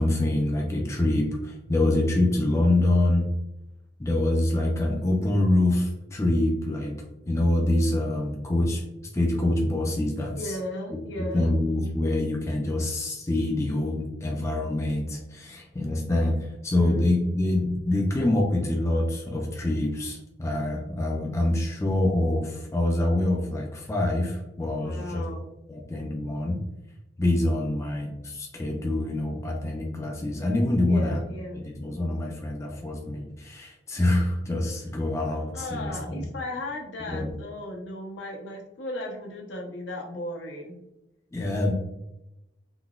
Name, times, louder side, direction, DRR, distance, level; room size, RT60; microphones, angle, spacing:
voice 1, 0.0-3.3 4.0-8.8 9.1-10.6 11.3-25.2 25.7-26.6 27.2-31.2 31.5-36.3 37.1-37.3 41.3-41.7, left 1 dB, 15° left, -1 dB, 0.4 m, -25 dB
voice 2, 10.3-11.5 16.7-17.1 24.8-25.5 30.9-31.6 35.5-40.9, left 1 dB, 70° left, 1 dB, 0.6 m, -36 dB
3.8 x 2.2 x 2.3 m, 0.91 s
head